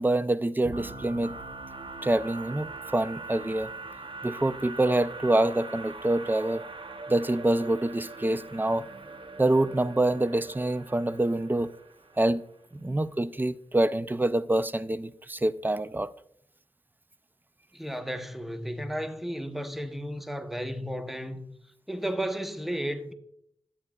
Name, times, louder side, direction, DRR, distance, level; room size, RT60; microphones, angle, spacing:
voice 1, 0.0-1.4 2.0-3.7 4.2-6.6 7.1-8.8 9.4-11.7 12.2-12.4 12.7-16.1, right 1 dB, 20° right, 0.4 m, -26 dB
sound 1, 0.6-12.4, right 3 dB, 55° right, 0.8 m, -42 dB
voice 2, 17.7-21.5 21.9-23.1, equal, ahead, 0.8 m, -33 dB
11.5 x 8.5 x 2.3 m
cardioid pair, 50°, 11 cm